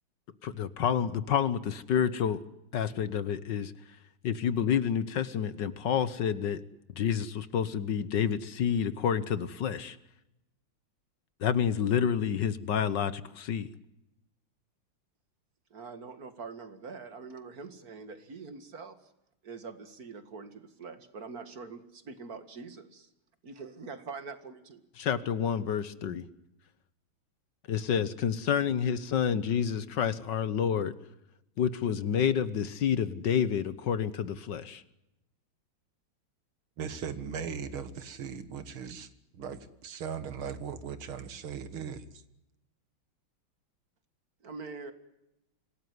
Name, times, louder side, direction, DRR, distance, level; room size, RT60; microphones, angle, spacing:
voice 1, 0.6-2.4 2.7-3.7 4.3-6.6 7.0-10.0 11.4-13.7 25.1-26.2 27.7-30.9 31.6-34.8, left 8 dB, 60° left, 15 dB, 1.6 m, -29 dB
voice 2, 15.7-18.9 19.5-23.1 23.5-24.8 44.4-44.9, right 4 dB, 45° right, 11 dB, 2.3 m, -44 dB
voice 3, 36.8-39.1 39.4-42.0, right 7 dB, 80° right, 12 dB, 2.5 m, -38 dB
26.0 x 18.0 x 9.6 m, 0.89 s
omnidirectional pair, 2.3 m